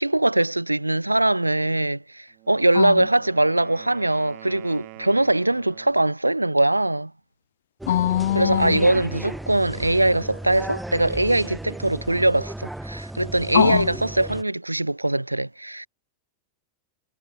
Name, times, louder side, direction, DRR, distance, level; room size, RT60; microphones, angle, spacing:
voice 1, 0.0-7.1 8.3-15.9, right 1 dB, 85° right, 0.4 m, -22 dB
Wind instrument woodwind instrument, 2.3-6.1, right 39 dB, 45° right, 3.1 m, -45 dB
sound 1, 7.8-14.4, right 1 dB, 5° right, 0.4 m, -35 dB
voice 2, 7.9-8.8 13.5-13.9, left 12 dB, 60° left, 0.6 m, -21 dB
figure-of-eight pair, 90°, 0 cm